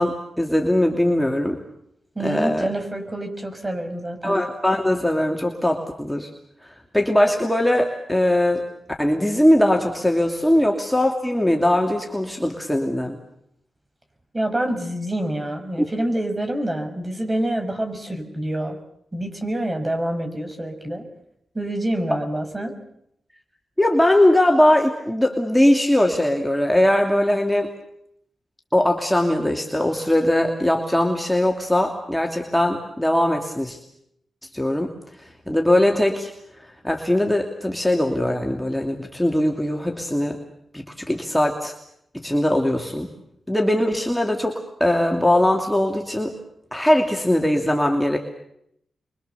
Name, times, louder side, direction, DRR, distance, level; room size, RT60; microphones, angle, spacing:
voice 1, 0.0-1.6 2.2-2.7 4.2-6.3 6.6-8.6 9.0-13.2 15.8-15.9 23.8-27.7 28.7-33.8 34.5-34.9 35.5-36.3 36.8-40.4 40.7-41.7 42.1-43.1 43.5-46.3 46.7-48.2, left 1 dB, 5° left, 2 dB, 2.7 m, -20 dB
voice 2, 2.2-4.4 14.3-18.8 19.1-21.1 21.5-22.7, right 1 dB, 25° right, 5 dB, 5.8 m, -27 dB
27.5 x 23.5 x 7.0 m, 0.75 s
cardioid pair, 60°, 0 cm